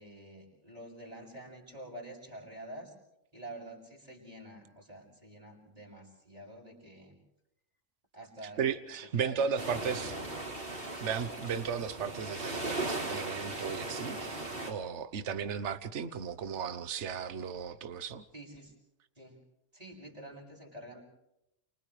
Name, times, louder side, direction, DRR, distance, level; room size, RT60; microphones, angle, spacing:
voice 1, 0.0-2.9 3.3-7.2 8.1-8.6 9.0-9.4 9.7-10.3 18.3-18.7 19.2-19.4 19.7-21.0, right 1 dB, 30° right, -1 dB, 7.1 m, -47 dB
voice 2, 8.4-10.1 11.0-18.2, right 7 dB, 65° right, 12 dB, 1.3 m, -35 dB
sound 1, 9.6-14.7, right 2 dB, 45° right, 4.0 m, -38 dB
29.5 x 29.0 x 3.3 m, 0.83 s
omnidirectional pair, 1.3 m